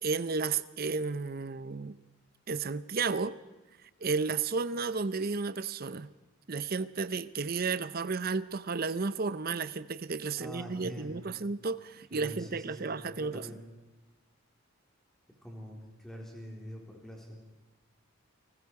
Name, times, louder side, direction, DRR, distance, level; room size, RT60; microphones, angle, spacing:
voice 1, 0.0-2.0 2.5-3.3 4.0-6.1 6.5-13.6, right 4 dB, 45° right, 15 dB, 0.6 m, -33 dB
voice 2, 10.4-11.2 12.1-12.9 13.2-13.6 15.4-15.8 16.0-17.4, equal, ahead, -1 dB, 4.0 m, -44 dB
29.5 x 20.0 x 4.8 m, 1.2 s
head